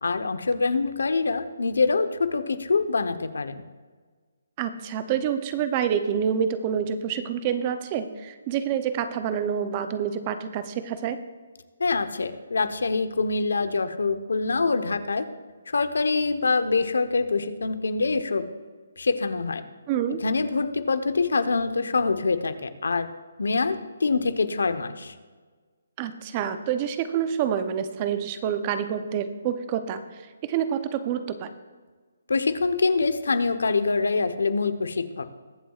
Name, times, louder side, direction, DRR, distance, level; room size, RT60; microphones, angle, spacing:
voice 1, 0.0-3.6 11.8-15.3 15.7-18.5 19.0-19.6 20.2-23.1 23.4-25.1 32.3-35.3, left 4 dB, 90° left, 10 dB, 0.9 m, -25 dB
voice 2, 4.6-11.2 19.9-20.2 26.0-30.0 30.4-31.5, right 8 dB, 20° right, 11 dB, 0.6 m, -27 dB
21.5 x 7.4 x 2.4 m, 1.4 s
hypercardioid pair, 170°, 0 cm